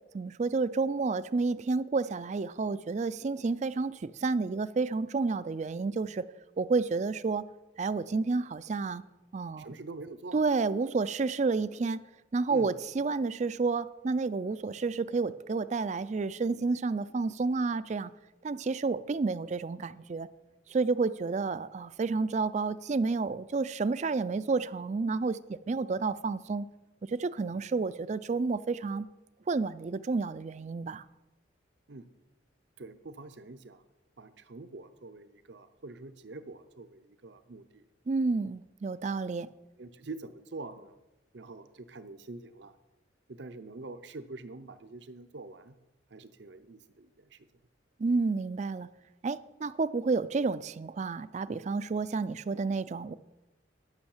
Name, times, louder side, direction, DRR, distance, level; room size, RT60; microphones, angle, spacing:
voice 1, 0.1-6.3 6.6-7.4 7.8-9.0 9.3-9.7 10.3-12.0 12.3-18.1 18.4-20.3 20.7-26.7 27.0-29.1 29.5-31.0 38.1-39.5 48.0-48.9 49.2-53.1, right 4 dB, 40° right, 16 dB, 0.4 m, -30 dB
voice 2, 9.6-10.4 10.8-10.9 12.5-12.7 31.9-32.1 32.8-33.8 34.2-37.9 39.8-41.0 41.3-42.7 43.3-45.8 46.1-47.5, right 3 dB, 70° right, 11 dB, 0.8 m, -45 dB
11.5 x 6.4 x 7.2 m, 1.0 s
head